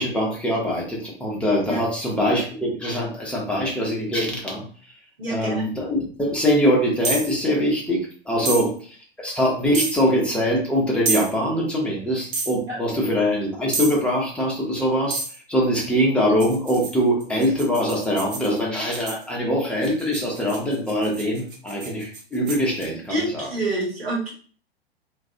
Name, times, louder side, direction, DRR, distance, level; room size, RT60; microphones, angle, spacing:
voice 1, 0.0-4.7 5.3-8.7 9.2-15.2 15.5-23.5, equal, 5° left, -4 dB, 0.6 m, -23 dB
voice 2, 5.2-5.7 8.5-8.7 12.7-12.8 23.1-24.3, right 2 dB, 75° right, -3 dB, 1.0 m, -27 dB
sound 1, 7.0-7.3 8.4-8.7 9.7-10.0 11.0-11.3 12.3-12.6 13.7-14.0 15.1-15.4 16.4-19.2 19.8-22.9, right 4 dB, 55° right, 0.7 m, -29 dB
2.3 x 2.1 x 2.6 m, 0.43 s
figure-of-eight pair, 100°, 31 cm